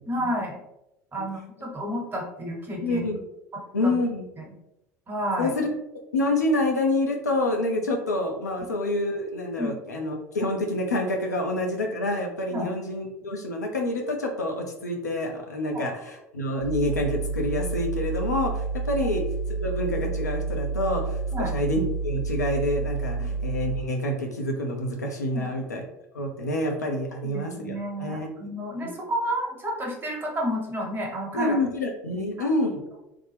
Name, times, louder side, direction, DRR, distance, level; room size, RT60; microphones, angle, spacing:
voice 1, 0.1-0.6 1.1-3.0 3.5-4.0 4.4-4.5 5.1-5.5 9.6-9.7 12.5-12.7 15.7-15.8 21.3-21.5 23.2-23.4 25.3-25.5 27.2-31.6 32.1-32.5, equal, 25° right, 0 dB, 1.0 m, -31 dB
voice 2, 2.8-3.2 3.7-4.3 5.4-5.7 6.1-19.2 19.6-25.8 26.1-28.3 31.3-32.9, left 1 dB, 80° left, 2 dB, 0.6 m, -27 dB
sound 1, 16.6-23.8, right 4 dB, 80° right, 0.8 m, -29 dB
3.3 x 2.2 x 3.3 m, 0.88 s
figure-of-eight pair, 65°, 9 cm